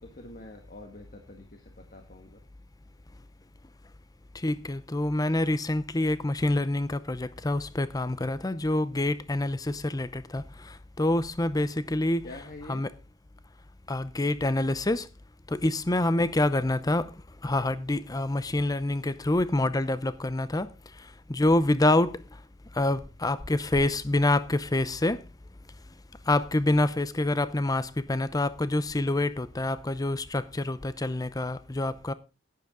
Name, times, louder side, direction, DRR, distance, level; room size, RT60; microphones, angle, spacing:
voice 1, 0.0-2.4 12.2-12.8, left 2 dB, 45° left, 1.5 m, -46 dB
voice 2, 4.3-12.3 12.7-12.9 13.9-15.1 15.5-20.7 21.3-22.2 22.7-25.2 26.3-32.1, left 2 dB, 20° left, 0.7 m, -27 dB
11.5 x 10.5 x 3.7 m
head